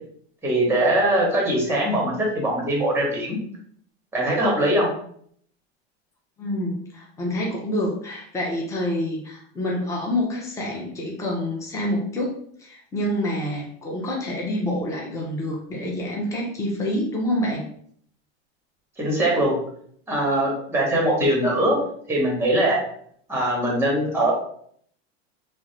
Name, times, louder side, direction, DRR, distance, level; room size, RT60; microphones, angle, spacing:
voice 1, 0.4-3.4 4.1-4.9 19.0-19.5 20.1-21.8 22.1-22.8 23.3-24.3, right 1 dB, 5° right, -2 dB, 1.0 m, -21 dB
voice 2, 6.4-17.7, left 1 dB, 10° left, -2 dB, 0.6 m, -27 dB
2.4 x 2.1 x 2.9 m, 0.63 s
hypercardioid pair, 110°, 32 cm